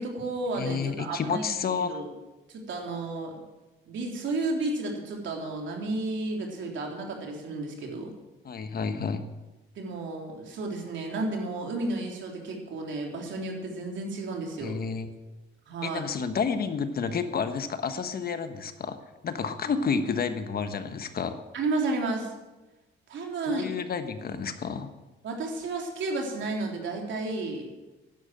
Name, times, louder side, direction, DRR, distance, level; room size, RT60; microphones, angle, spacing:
voice 1, 0.0-1.5 1.8-2.1 2.5-3.4 3.9-8.1 9.8-14.8 15.7-16.0 21.5-22.3 23.1-23.7 25.2-27.7, right 2 dB, 70° right, 1 dB, 3.5 m, -32 dB
voice 2, 0.6-2.0 8.4-9.2 14.6-15.1 15.8-19.0 19.2-21.4 23.5-24.9, left 6 dB, 50° left, 9 dB, 1.3 m, -30 dB
11.0 x 11.0 x 7.7 m, 1.1 s
cardioid pair, 90°, 20 cm